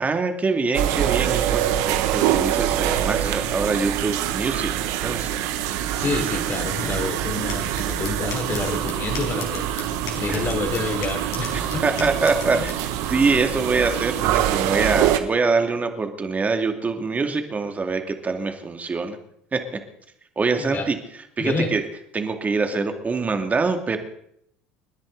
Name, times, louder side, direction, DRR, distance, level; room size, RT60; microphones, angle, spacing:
voice 1, 0.0-5.4 6.9-7.0 10.3-10.4 11.5-12.8 13.1-19.2 19.5-19.8 20.4-20.9 21.4-21.8 22.1-24.0, right 4 dB, 25° right, 5 dB, 2.5 m, -24 dB
sound 1, 0.7-15.2, right 11 dB, 70° right, 1.4 m, -25 dB
voice 2, 5.9-9.7 10.1-12.1 12.5-12.6 20.5-20.9 21.4-21.7, left 3 dB, 40° left, 2 dB, 4.3 m, -28 dB
sound 2, 6.6-13.9, left 4 dB, 65° left, 5.2 m, -38 dB
29.0 x 10.5 x 4.0 m, 0.73 s
hypercardioid pair, 75°, 6 cm